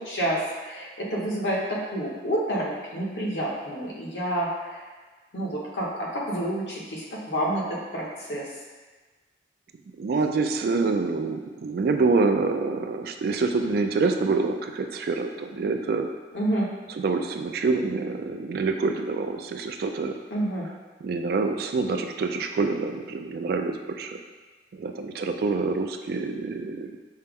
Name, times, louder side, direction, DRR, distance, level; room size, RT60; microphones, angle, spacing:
voice 1, 0.0-4.8 5.3-8.5 16.3-16.7 20.3-20.7, right 1 dB, 85° left, -4 dB, 1.0 m, -29 dB
voice 2, 10.0-16.1 17.0-20.2 21.0-24.2 24.7-26.9, right 4 dB, 60° right, 5 dB, 0.3 m, -26 dB
5.4 x 2.0 x 3.5 m, 1.3 s
head